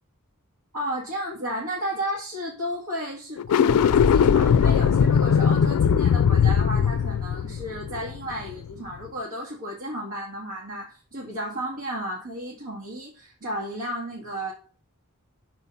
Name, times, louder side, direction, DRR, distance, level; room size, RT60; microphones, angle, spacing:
voice 1, 0.7-14.5, equal, 85° right, -4 dB, 1.9 m, -33 dB
sound 1, 3.4-8.7, left 7 dB, 80° left, 0.3 m, -20 dB
5.9 x 4.3 x 5.4 m, 0.40 s
head